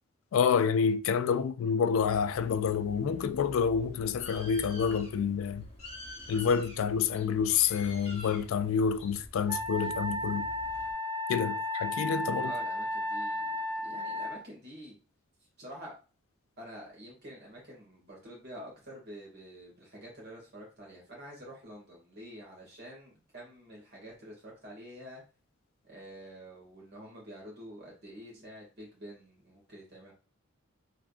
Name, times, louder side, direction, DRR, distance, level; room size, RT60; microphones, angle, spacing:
voice 1, 0.3-5.6 6.3-10.5 11.3-12.5, left 6 dB, 70° left, 0.3 m, -28 dB
Bird, 2.0-10.9, left 2 dB, 30° left, 1.0 m, -48 dB
Wind instrument woodwind instrument, 9.5-14.4, left 1 dB, 20° right, 0.5 m, -34 dB
voice 2, 12.4-15.0 15.6-15.9 16.6-25.2 25.8-30.1, equal, 55° right, 1.8 m, -48 dB
3.6 x 3.3 x 2.3 m
head